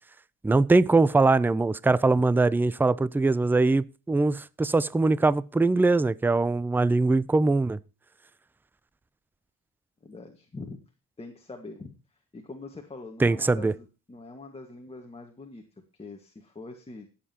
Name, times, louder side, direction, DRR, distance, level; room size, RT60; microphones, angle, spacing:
voice 1, 0.4-7.8 13.2-13.7, right 3 dB, 5° right, 0.4 m, -22 dB
voice 2, 10.0-10.8 11.2-12.0 12.3-15.6 16.0-17.1, left 3 dB, 20° left, 1.7 m, -43 dB
18.5 x 7.4 x 2.9 m
cardioid pair, 90°, 30 cm